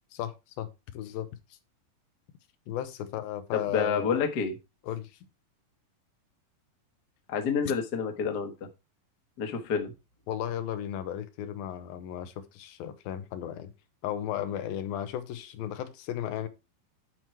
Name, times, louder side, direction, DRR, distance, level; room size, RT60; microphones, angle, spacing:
voice 1, 0.1-0.7 0.9-1.3 2.7-4.2 4.8-5.1 10.3-13.7 14.0-16.5, left 11 dB, 90° left, 2.7 m, -35 dB
voice 2, 3.5-4.5 7.3-8.5 9.4-9.9, left 6 dB, 55° left, 1.1 m, -28 dB
9.7 x 4.7 x 4.4 m
omnidirectional pair, 4.1 m